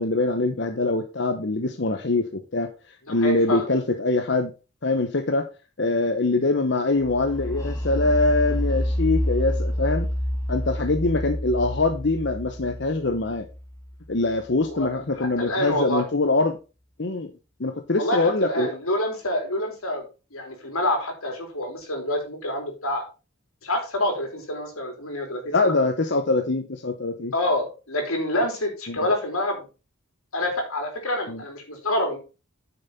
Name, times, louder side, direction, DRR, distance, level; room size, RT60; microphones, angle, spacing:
voice 1, 0.0-4.5 4.8-5.5 5.8-10.1 10.5-13.5 14.1-16.6 17.0-17.3 17.6-18.7 25.5-27.3 28.9-29.0 31.3-31.4, left 2 dB, 55° left, 6 dB, 0.9 m, -23 dB
voice 2, 3.1-3.7 14.7-14.9 15.2-16.0 17.9-20.1 20.3-23.0 23.6-25.7 27.3-29.7 30.3-32.2, left 1 dB, 90° left, 3 dB, 3.9 m, -27 dB
sound 1, 7.0-14.7, equal, 15° left, 1.8 m, -28 dB
9.6 x 6.9 x 4.1 m, 0.31 s
head